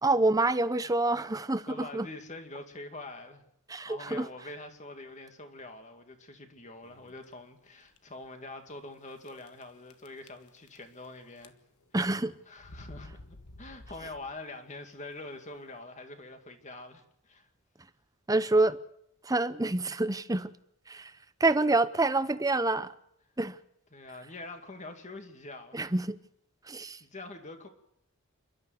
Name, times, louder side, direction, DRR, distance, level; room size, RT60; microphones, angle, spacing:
voice 1, 0.0-2.1 3.7-4.3 11.9-12.4 18.3-18.8 19.2-20.5 20.9-22.9 23.4-23.6 25.7-26.2 26.6-27.0, right 2 dB, 15° right, 0.7 m, -27 dB
voice 2, 1.7-3.4 3.8-11.6 12.5-13.2 13.6-17.5 23.9-25.8 26.8-27.7, left 2 dB, 30° left, 2.4 m, -45 dB
sound 1, 6.8-7.3 7.9-8.0 8.2-8.3 9.2-9.6 9.9-11.1 11.4-11.9 12.6-14.5, left 1 dB, 85° left, 1.3 m, -51 dB
28.0 x 12.5 x 7.9 m
head